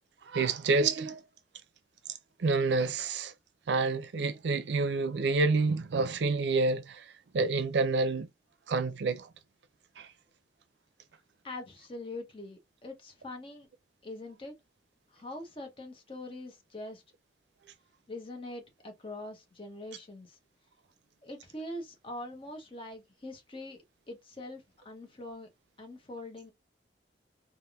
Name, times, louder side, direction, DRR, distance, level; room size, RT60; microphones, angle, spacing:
voice 1, 0.2-1.2 2.4-3.3 3.7-7.1 7.3-8.3 8.7-9.3 10.0-10.1, right 3 dB, 75° right, 0.4 m, -28 dB
voice 2, 11.4-13.7 14.0-14.5 15.1-17.0 18.1-20.4 21.2-23.8 24.1-25.5 25.8-26.5, left 1 dB, 30° left, 0.8 m, -43 dB
3.3 x 2.5 x 2.3 m
head